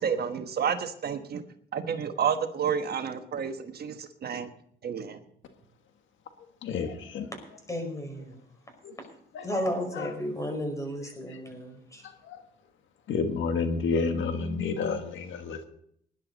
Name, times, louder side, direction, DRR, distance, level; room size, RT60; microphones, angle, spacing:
voice 1, 0.0-1.4 1.7-4.5 4.8-5.2, right 7 dB, 55° right, 7 dB, 1.2 m, -30 dB
voice 2, 6.6-7.3 8.8-9.0 9.3-9.4 9.9-10.1 12.3-12.4 13.1-15.6, left 4 dB, 75° left, 7 dB, 1.5 m, -30 dB
voice 3, 7.7-8.4 9.4-12.1, equal, 15° left, 4 dB, 5.2 m, -33 dB
19.5 x 11.0 x 4.1 m, 0.68 s
cardioid pair, 90°, 20 cm